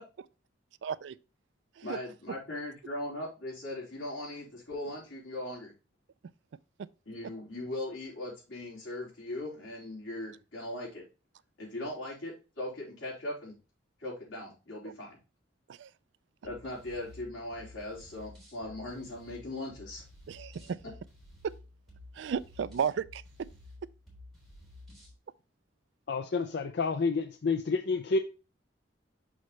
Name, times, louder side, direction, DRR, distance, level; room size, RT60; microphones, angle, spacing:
voice 1, 0.8-1.2 1.8-2.0 15.7-15.9 20.3-20.8 22.2-23.2, right 7 dB, 65° right, 0.3 m, -33 dB
voice 2, 1.8-5.7 7.1-11.0 11.6-13.6 14.0-15.2 16.4-20.0, left 1 dB, 90° left, 4.0 m, -39 dB
sound 1, 16.4-25.2, left 2 dB, ahead, 3.5 m, -53 dB
voice 3, 26.1-28.2, left 4 dB, 60° left, 0.5 m, -29 dB
6.3 x 6.1 x 3.1 m
head